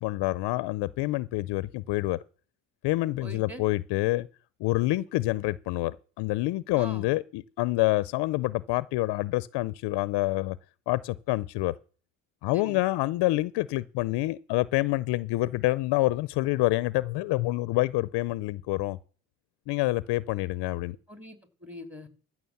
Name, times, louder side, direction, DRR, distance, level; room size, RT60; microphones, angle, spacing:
voice 1, 0.0-2.2 2.8-4.3 4.6-10.6 10.9-11.7 12.4-19.0 19.7-21.0, left 19 dB, 70° left, 0.6 m, -27 dB
voice 2, 3.2-3.6 6.7-7.1 12.5-12.8 21.1-22.1, equal, 5° right, 2.9 m, -43 dB
14.5 x 6.2 x 7.1 m
supercardioid pair, 80°, 42 cm